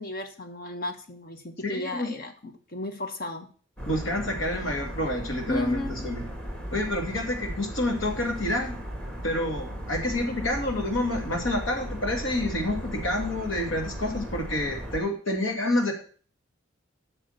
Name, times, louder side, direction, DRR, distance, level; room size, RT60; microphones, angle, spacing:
voice 1, 0.0-3.5 5.5-6.0, left 2 dB, 50° left, 6 dB, 1.3 m, -34 dB
voice 2, 1.6-2.1 3.9-6.2 6.7-8.8 9.2-15.9, left 1 dB, 80° left, 3 dB, 2.5 m, -28 dB
sound 1, 3.8-15.0, equal, 5° left, 1.6 m, -36 dB
8.7 x 6.5 x 6.6 m, 0.42 s
head